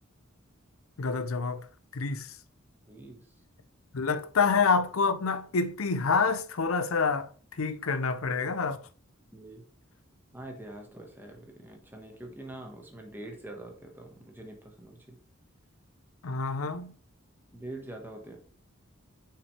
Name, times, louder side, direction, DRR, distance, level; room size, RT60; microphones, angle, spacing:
voice 1, 1.0-1.7 1.9-2.3 3.9-7.3 7.6-8.8 16.2-16.9, left 4 dB, 90° left, 0.7 m, -27 dB
voice 2, 2.9-3.3 9.3-9.6 10.3-15.2 17.5-18.4, right 1 dB, 10° right, 1.5 m, -44 dB
6.7 x 5.9 x 3.3 m
head